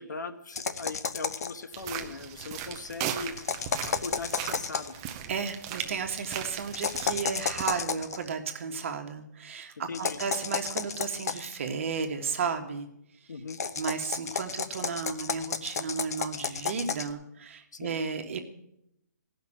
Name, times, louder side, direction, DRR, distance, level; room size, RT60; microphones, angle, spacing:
voice 1, 0.0-3.4 3.9-5.0 9.8-10.2 13.3-13.6 17.7-18.0, left 4 dB, 80° left, 8 dB, 1.3 m, -39 dB
sound 1, 0.6-1.6 3.4-5.0 6.7-8.2 9.9-11.6 13.5-17.1, left 6 dB, 60° left, 0.9 m, -32 dB
sound 2, 1.7-7.8, right 9 dB, 20° right, 0.6 m, -38 dB
voice 2, 5.3-12.9 13.8-18.4, right 5 dB, 45° right, 5 dB, 1.5 m, -33 dB
16.0 x 5.9 x 8.6 m, 0.79 s
hypercardioid pair, 165°, 10 cm